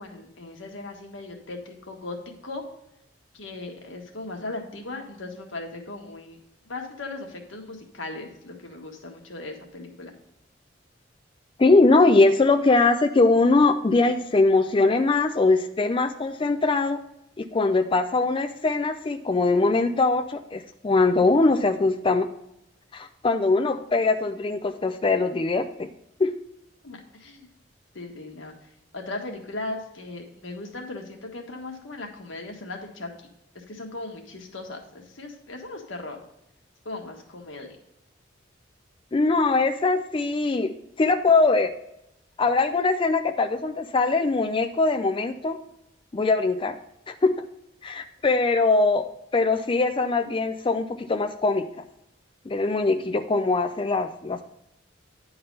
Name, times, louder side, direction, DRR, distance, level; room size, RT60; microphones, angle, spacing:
voice 1, 0.0-2.2 2.4-2.6 3.3-6.4 6.7-10.1 26.8-27.5 27.9-28.5 28.9-33.1 33.5-36.2 36.8-37.7, left 2 dB, 90° left, 2 dB, 1.5 m, -37 dB
voice 2, 11.6-17.0 17.4-22.3 22.9-25.9 26.2-26.3 39.1-41.7 42.4-45.6 46.1-46.8 47.1-47.4 47.8-51.7 52.5-54.4, left 3 dB, 25° left, 6 dB, 0.4 m, -22 dB
10.0 x 4.0 x 5.3 m, 0.82 s
head